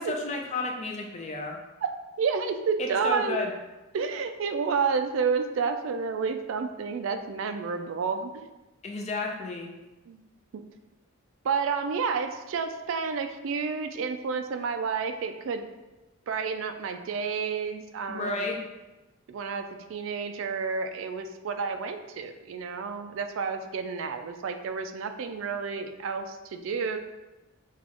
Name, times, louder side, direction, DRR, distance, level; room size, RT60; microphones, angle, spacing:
voice 1, 0.0-1.6 2.8-3.5 8.8-9.7 18.1-18.6, left 2 dB, 35° left, 1 dB, 0.5 m, -32 dB
voice 2, 2.2-3.4 3.9-8.5 10.1-10.2 10.5-10.6 11.4-15.7 16.3-18.5 19.3-27.0, right 5 dB, 70° right, 7 dB, 0.3 m, -30 dB
6.0 x 2.4 x 2.9 m, 1.1 s
head